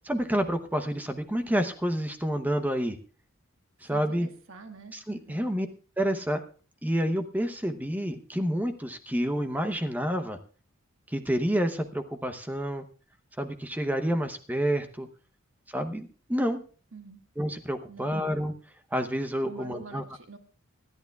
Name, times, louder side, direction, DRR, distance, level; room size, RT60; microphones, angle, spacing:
voice 1, 0.0-3.0 3.8-4.3 5.1-5.7 6.0-6.4 6.8-10.4 11.1-12.8 13.4-15.1 15.7-16.6 17.4-18.5 18.9-20.0, equal, 10° right, 8 dB, 0.8 m, -29 dB
voice 2, 3.8-5.5 16.9-17.2 17.9-18.2 19.4-20.4, right 4 dB, 65° right, 5 dB, 1.5 m, -46 dB
25.5 x 11.0 x 2.3 m, 0.38 s
head